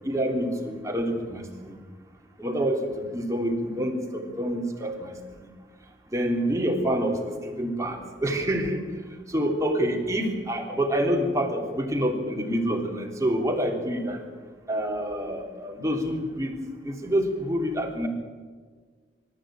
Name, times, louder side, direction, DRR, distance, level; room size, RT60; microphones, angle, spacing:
voice 1, 0.1-1.8 2.4-5.5 6.1-8.8 9.3-14.2 14.7-16.6 16.8-18.1, equal, 15° right, 1 dB, 3.6 m, -27 dB
25.5 x 14.0 x 9.2 m, 1.5 s
head